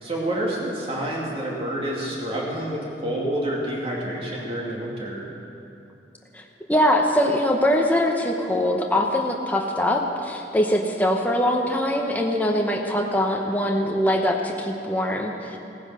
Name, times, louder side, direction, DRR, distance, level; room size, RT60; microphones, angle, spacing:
voice 1, 0.0-5.3, right 1 dB, 35° right, -3 dB, 2.5 m, -28 dB
voice 2, 6.7-15.6, left 1 dB, 10° left, 1 dB, 0.9 m, -22 dB
16.5 x 9.7 x 6.2 m, 2.7 s
head